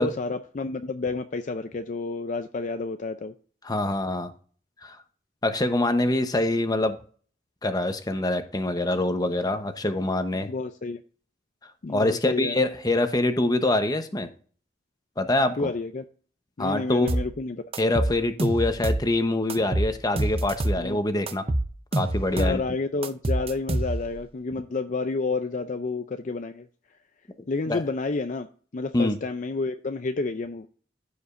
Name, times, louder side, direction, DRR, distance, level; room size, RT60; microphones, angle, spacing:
voice 1, 0.0-3.3 10.3-11.0 11.8-12.6 15.6-16.0 16.6-17.6 20.8-21.0 22.3-26.7 27.5-28.5 28.7-30.7, left 3 dB, 45° left, 0.5 m, -30 dB
voice 2, 3.6-4.3 4.8-5.0 5.4-7.0 7.6-10.5 11.9-14.3 15.2-15.7 16.6-17.2 17.8-21.4 21.9-22.6 27.7-27.8 28.9-29.2, left 2 dB, 20° left, 0.9 m, -25 dB
sound 1, 17.1-17.3 17.7-19.1 19.5-20.9 21.3-22.6 23.0-24.2, right 1 dB, 30° right, 0.7 m, -26 dB
14.5 x 5.1 x 2.6 m
head